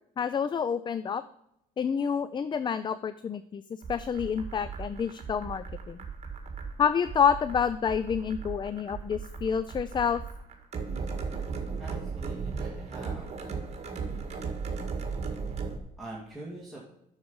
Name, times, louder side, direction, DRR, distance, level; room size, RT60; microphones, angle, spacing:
voice 1, 0.2-1.2 1.8-3.6 3.9-6.0 6.8-10.2, left 7 dB, 25° left, 14 dB, 0.4 m, -28 dB
sound 1, 3.8-15.8, right 5 dB, 40° right, 1.9 m, -36 dB
voice 2, 11.8-13.3 16.0-16.8, right 2 dB, ahead, -6 dB, 2.2 m, -44 dB
9.5 x 6.5 x 5.4 m, 0.79 s
cardioid pair, 110°, 17 cm